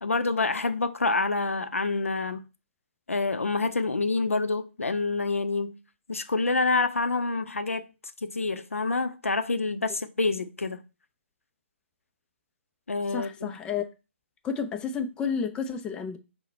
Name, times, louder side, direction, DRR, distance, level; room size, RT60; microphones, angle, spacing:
voice 1, 0.0-2.4 3.1-5.8 6.1-7.8 8.2-10.8 12.9-13.5, left 3 dB, 85° left, 0.5 m, -27 dB
voice 2, 13.1-13.9 14.4-16.2, left 6 dB, 10° left, 0.4 m, -31 dB
4.9 x 2.1 x 4.2 m
figure-of-eight pair, 135°, 7 cm